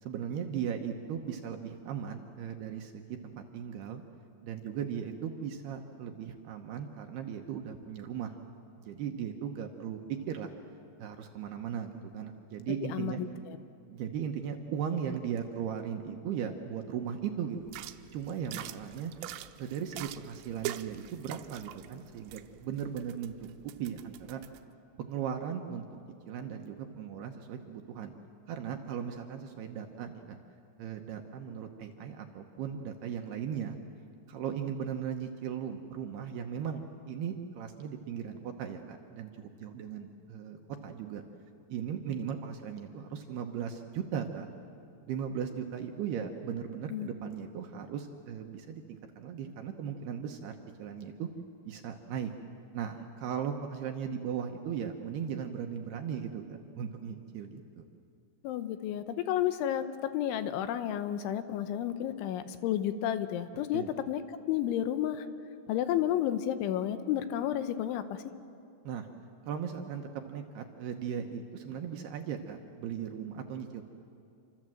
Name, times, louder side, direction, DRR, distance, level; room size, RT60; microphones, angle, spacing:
voice 1, 0.0-4.0 4.4-8.3 8.8-10.5 11.0-13.2 13.9-17.6 18.1-19.1 19.6-24.4 25.0-25.8 26.3-28.1 28.5-30.4 30.8-33.8 34.3-41.2 41.7-44.5 45.1-51.3 51.7-52.3 52.7-57.8 63.7-63.9 68.8-69.1 69.5-73.8, right 8 dB, 70° right, 4 dB, 2.7 m, -37 dB
voice 2, 12.9-13.6 46.9-47.1 58.4-64.2 64.5-65.3 65.7-68.2, left 11 dB, 80° left, 10 dB, 3.2 m, -31 dB
sound 1, 17.6-24.6, right 13 dB, 90° right, 3.4 m, -44 dB
28.5 x 26.0 x 7.7 m, 2.5 s
omnidirectional pair, 5.6 m